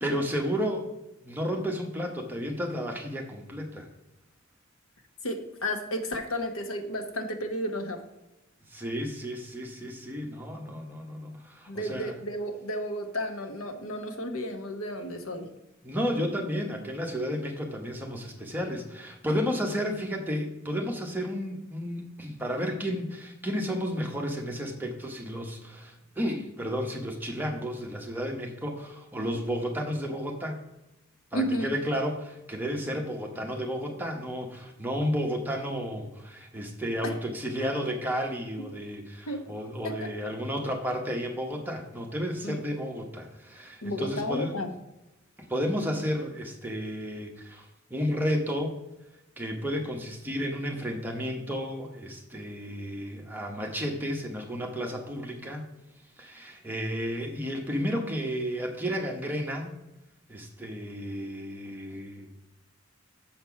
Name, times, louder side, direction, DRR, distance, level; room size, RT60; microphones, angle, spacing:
voice 1, 0.0-0.9 1.2-3.9 8.7-12.1 15.8-30.5 31.3-44.6 45.4-48.7 49.4-55.6 56.2-59.7 60.3-62.5, equal, 10° right, 1 dB, 1.0 m, -32 dB
voice 2, 5.2-8.0 11.7-15.5 31.3-31.7 37.0-37.1 38.6-38.7 39.3-39.4 39.8-40.1 42.4-42.6 43.8-44.7, equal, 85° left, 6 dB, 1.0 m, -32 dB
7.0 x 4.4 x 5.7 m, 0.94 s
head